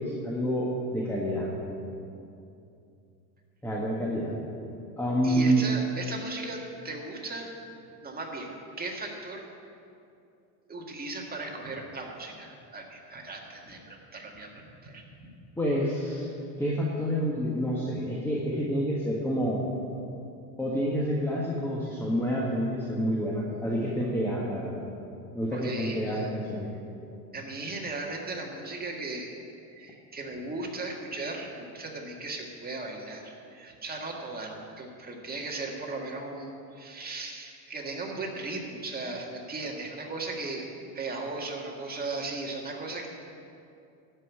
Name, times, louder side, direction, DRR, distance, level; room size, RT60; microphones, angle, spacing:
voice 1, 0.0-1.5 3.6-4.4 5.0-5.6 15.6-16.3 16.6-19.6 20.6-24.8 25.3-26.7, equal, 5° left, -4 dB, 1.5 m, -28 dB
voice 2, 5.2-7.5 8.0-8.5 8.8-9.5 10.7-15.3 25.5-26.3 27.3-29.3 29.7-40.6 41.0-43.1, right 2 dB, 20° right, -1 dB, 1.9 m, -37 dB
12.5 x 5.5 x 8.7 m, 2.6 s
supercardioid pair, 110°, 50 cm